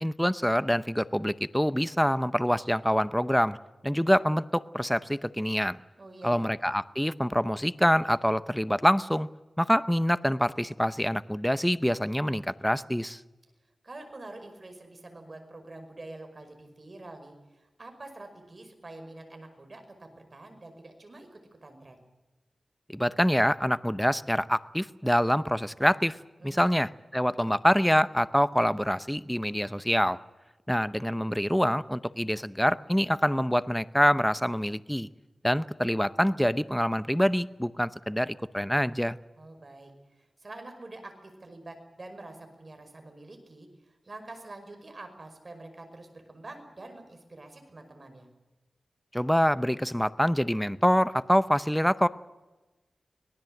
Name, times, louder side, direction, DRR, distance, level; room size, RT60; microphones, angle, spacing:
voice 1, 0.0-3.6 3.8-5.8 6.2-9.3 9.6-13.2 22.9-26.2 26.4-30.2 30.7-35.1 35.4-39.2 49.1-52.1, equal, 5° left, 14 dB, 0.7 m, -25 dB
voice 2, 6.0-6.5 13.8-22.0 26.4-26.8 39.4-48.3, right 2 dB, 40° right, 6 dB, 5.5 m, -46 dB
25.0 x 19.0 x 7.8 m, 1.1 s
wide cardioid pair, 100°, 0 cm